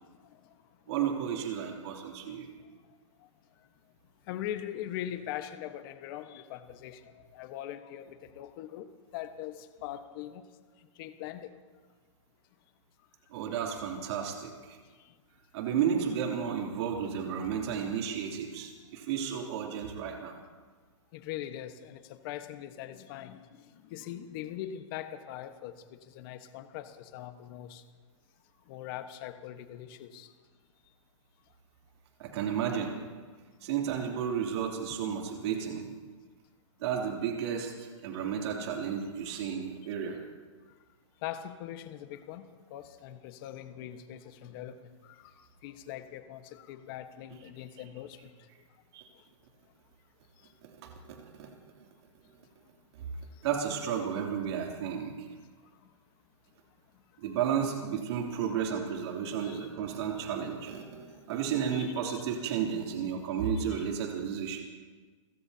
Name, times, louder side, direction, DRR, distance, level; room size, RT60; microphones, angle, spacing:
voice 1, 0.9-2.4 13.3-14.8 15.5-20.3 32.2-32.9 33.6-35.8 36.8-40.2 48.9-49.0 50.6-51.5 53.4-55.3 57.2-64.6, right 8 dB, 55° right, 0 dB, 3.0 m, -32 dB
voice 2, 4.3-8.9 9.1-10.4 11.0-11.5 19.3-19.4 21.1-23.5 23.7-27.8 28.7-30.3 34.7-34.8 41.2-44.7 45.0-45.3 45.6-48.3 57.3-57.4 59.4-59.7 61.7-62.2 63.5-63.9, left 11 dB, 45° left, 8 dB, 1.3 m, -41 dB
30.0 x 16.5 x 2.9 m, 1.4 s
hypercardioid pair, 140°, 16 cm